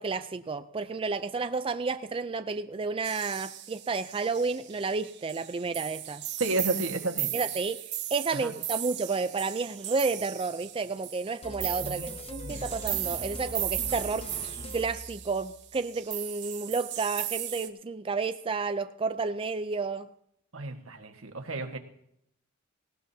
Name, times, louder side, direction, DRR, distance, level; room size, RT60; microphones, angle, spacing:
voice 1, 0.0-6.2 7.3-14.3 14.7-20.1, right 4 dB, 25° right, 0.4 m, -31 dB
sound 1, 3.0-17.7, right 13 dB, 60° right, 1.0 m, -37 dB
voice 2, 6.4-7.3 8.3-8.5 11.8-12.6 20.5-21.8, right 2 dB, 90° right, 1.5 m, -32 dB
sound 2, 11.4-15.7, left 1 dB, 30° left, 0.7 m, -42 dB
18.5 x 18.0 x 2.8 m
head